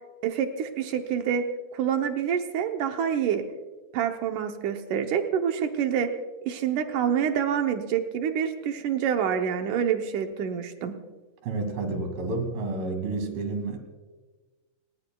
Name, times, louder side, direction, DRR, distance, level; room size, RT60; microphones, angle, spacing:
voice 1, 0.2-1.5 1.7-3.4 3.9-6.1 6.4-10.9, right 8 dB, 70° right, 5 dB, 2.2 m, -27 dB
voice 2, 11.4-13.8, right 3 dB, 90° right, 5 dB, 4.1 m, -30 dB
30.0 x 18.0 x 2.3 m, 1.3 s
omnidirectional pair, 4.1 m